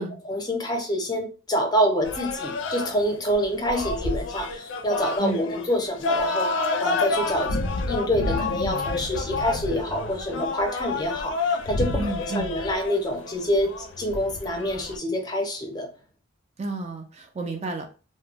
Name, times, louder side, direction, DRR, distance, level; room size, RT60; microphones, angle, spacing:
voice 1, 0.2-6.5 6.8-12.0 12.3-15.9, equal, 20° left, 0.5 m, -26 dB
sound 1, 2.0-15.0, left 3 dB, 70° left, 0.4 m, -29 dB
voice 2, 12.0-12.5 16.6-17.9, right 3 dB, 35° right, 0.4 m, -31 dB
2.2 x 2.1 x 3.2 m
head